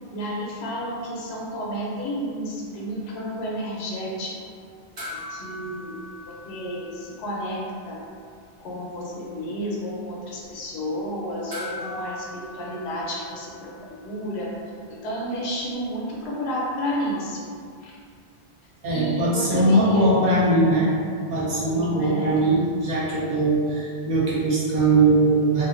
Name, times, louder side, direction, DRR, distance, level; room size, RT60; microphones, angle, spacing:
voice 1, 0.1-4.3 5.3-5.9 6.5-8.0 8.6-13.7 14.0-14.5 14.9-17.4 17.8-17.9 18.9-20.1 21.7-22.4, equal, 85° left, -4 dB, 0.9 m, -31 dB
sound 1, 5.0-7.6 7.9-8.0 11.5-14.1 16.2-16.3, left 1 dB, 70° right, 1.1 m, -40 dB
voice 2, 18.8-20.9 21.3-25.7, right 2 dB, 45° right, -7 dB, 0.7 m, -20 dB
2.5 x 2.2 x 2.4 m, 2.2 s
omnidirectional pair, 1.1 m